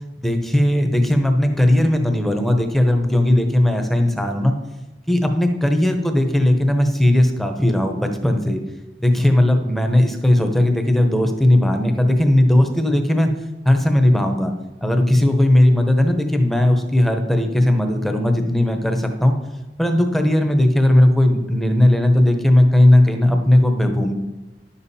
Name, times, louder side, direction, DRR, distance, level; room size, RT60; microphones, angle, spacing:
voice 1, 0.2-4.5 5.1-8.6 9.0-13.3 13.6-14.5 14.8-19.3 19.8-24.1, left 1 dB, ahead, 5 dB, 0.9 m, -17 dB
10.5 x 7.2 x 4.2 m, 1.1 s
head